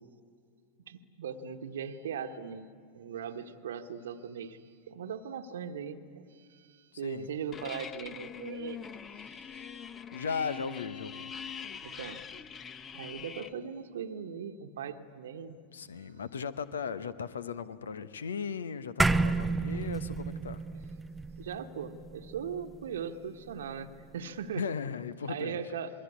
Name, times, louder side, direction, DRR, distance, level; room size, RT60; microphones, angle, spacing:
voice 1, 0.9-8.9 9.2-9.8 11.8-12.2 12.9-15.6 16.0-16.1 21.4-24.7 25.3-25.9, right 7 dB, 60° right, 8 dB, 1.2 m, -39 dB
sound 1, 7.5-13.5, left 7 dB, 25° left, 0.8 m, -43 dB
voice 2, 10.1-11.3 15.7-20.6 24.5-25.6, left 6 dB, 70° left, 15 dB, 1.0 m, -37 dB
sound 2, 19.0-23.6, right 3 dB, 5° right, 0.6 m, -31 dB
26.5 x 21.5 x 9.6 m, 2.2 s
figure-of-eight pair, 90°, 0 cm